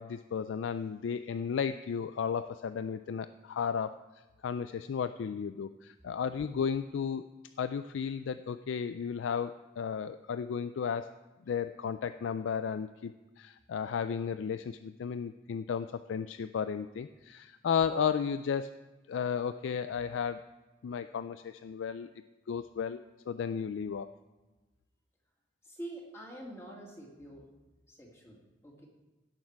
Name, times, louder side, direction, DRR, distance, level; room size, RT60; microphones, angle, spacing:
voice 1, 0.0-4.0 4.4-7.2 7.6-11.1 11.5-18.7 19.1-20.4 20.8-22.1 22.5-24.1, left 7 dB, 85° left, 11 dB, 0.3 m, -34 dB
voice 2, 25.6-27.5 27.9-28.9, right 1 dB, 15° left, -2 dB, 2.2 m, -46 dB
16.5 x 6.6 x 4.7 m, 1.1 s
head